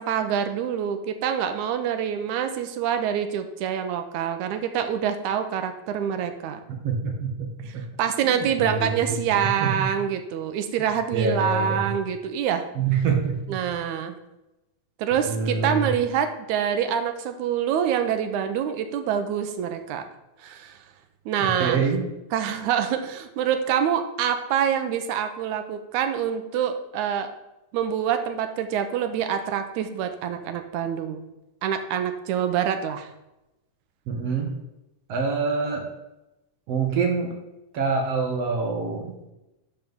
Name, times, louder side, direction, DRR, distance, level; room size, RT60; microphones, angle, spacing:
voice 1, 0.0-6.6 7.7-12.6 13.5-14.2 15.0-20.0 20.4-20.8 21.3-21.9 22.3-27.3 27.7-31.2 31.6-33.1, right 8 dB, 80° right, 8 dB, 2.1 m, -26 dB
voice 2, 6.8-7.8 8.2-8.9 9.3-9.9 11.1-11.8 12.8-13.6 15.3-15.9 21.4-22.1 34.1-34.5 35.1-35.8 36.7-37.4 37.7-39.2, right 5 dB, 65° right, 2 dB, 2.0 m, -26 dB
11.5 x 5.4 x 3.6 m, 0.95 s
omnidirectional pair, 3.4 m